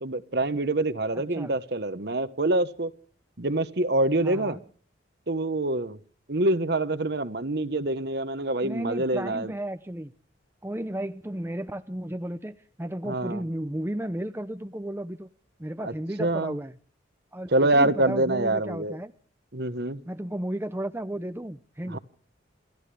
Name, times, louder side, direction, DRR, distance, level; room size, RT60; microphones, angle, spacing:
voice 1, 0.0-2.9 3.4-4.6 5.3-6.0 6.3-9.5 13.0-13.4 15.8-15.9 16.2-16.5 17.5-19.0 19.5-20.0 21.9-22.0, right 2 dB, 55° right, 1.2 m, -26 dB
voice 2, 1.1-1.6 4.2-4.6 8.6-10.1 10.6-15.3 15.6-16.7 17.3-19.1 20.0-22.0, right 1 dB, 10° right, 0.7 m, -34 dB
28.5 x 14.5 x 3.4 m
head